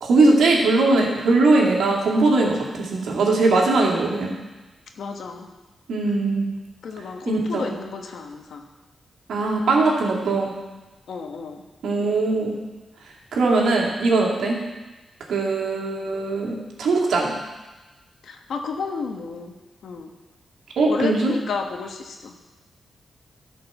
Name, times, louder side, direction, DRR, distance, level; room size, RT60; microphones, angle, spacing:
voice 1, 0.0-4.3 5.9-6.5 7.3-7.7 9.3-10.5 11.8-12.6 13.3-14.6 15.3-17.3 20.8-21.3, right 3 dB, 80° right, -2 dB, 2.3 m, -20 dB
voice 2, 5.0-5.5 6.8-8.6 11.1-11.6 18.2-19.5 19.8-20.1 20.9-22.3, left 5 dB, 75° left, 4 dB, 1.3 m, -32 dB
11.5 x 5.3 x 6.7 m, 1.1 s
cardioid pair, 60°, 0 cm